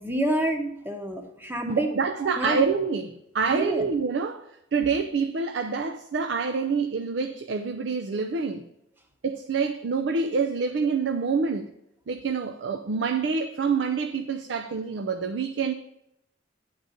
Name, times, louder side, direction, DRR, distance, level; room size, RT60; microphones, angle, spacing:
voice 1, 0.0-1.9 2.4-2.7 3.5-3.9, right 1 dB, 10° right, 0.8 m, -28 dB
voice 2, 1.7-3.1 3.3-4.5 4.7-8.6 9.2-11.7 12.1-15.7, right 5 dB, 75° right, 0.5 m, -26 dB
9.4 x 4.0 x 6.4 m
head